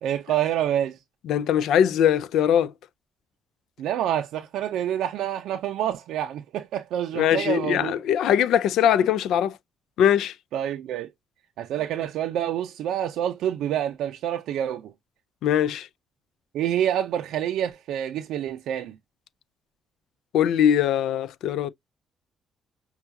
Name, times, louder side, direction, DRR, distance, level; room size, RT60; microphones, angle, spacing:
voice 1, 0.0-1.0 3.8-7.9 10.5-11.1 11.6-14.9 16.5-19.0, right 10 dB, 85° right, 0.4 m, -27 dB
voice 2, 1.3-2.7 7.1-9.6 10.0-10.3 15.4-15.9 20.3-21.7, left 9 dB, 80° left, 0.4 m, -21 dB
5.6 x 2.3 x 2.6 m
cardioid pair, 90°, 0 cm